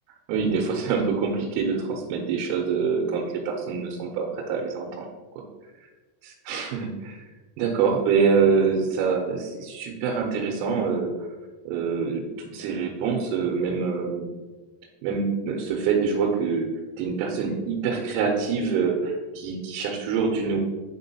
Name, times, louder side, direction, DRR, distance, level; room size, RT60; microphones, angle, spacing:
voice 1, 0.3-5.1 6.4-7.2 7.6-11.1 11.7-14.3 15.0-16.7 17.0-20.6, right 5 dB, 90° right, -1 dB, 3.5 m, -25 dB
9.8 x 3.7 x 2.7 m, 1.3 s
omnidirectional pair, 5.9 m